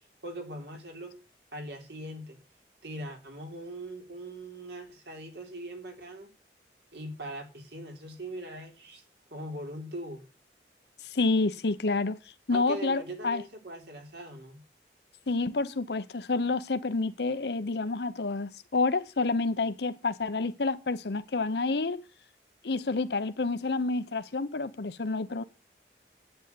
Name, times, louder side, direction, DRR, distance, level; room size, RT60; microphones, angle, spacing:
voice 1, 0.2-1.2 1.5-2.4 2.8-6.3 6.9-9.0 9.3-10.2 12.5-14.6, right 1 dB, 75° right, 3.4 m, -41 dB
voice 2, 11.0-12.2 12.5-13.4 15.3-22.0 22.6-25.4, left 3 dB, 75° left, 0.8 m, -29 dB
9.0 x 9.0 x 8.5 m
head